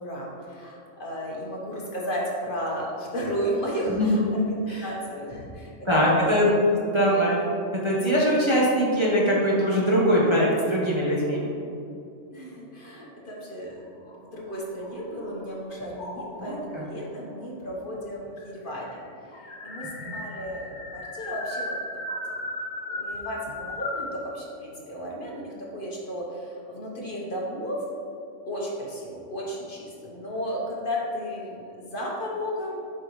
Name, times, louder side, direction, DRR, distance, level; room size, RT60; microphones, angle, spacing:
voice 1, 0.0-6.4 6.9-7.3 12.3-22.0 22.3-22.4 22.9-27.8 28.5-32.8, equal, 45° left, -4 dB, 1.2 m, -34 dB
voice 2, 3.9-4.2 4.7-4.8 5.9-6.5 6.8-7.4 7.8-11.5 16.4-16.9 20.0-20.1, equal, 25° right, -6 dB, 0.9 m, -22 dB
sound 1, 14.0-15.4 16.0-16.6 17.6-17.7 18.0-18.1 18.4-24.1, left 1 dB, 60° left, 1.4 m, -36 dB
7.3 x 5.4 x 3.1 m, 2.8 s
omnidirectional pair, 1.3 m